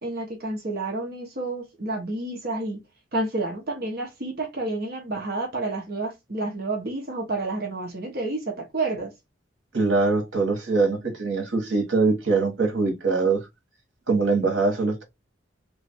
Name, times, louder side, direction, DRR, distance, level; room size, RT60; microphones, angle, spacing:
voice 1, 0.0-2.8 3.1-9.1, right 2 dB, 50° right, 1.0 m, -30 dB
voice 2, 9.7-13.4 14.1-15.0, right 3 dB, 75° right, 1.3 m, -23 dB
3.1 x 2.5 x 4.3 m
head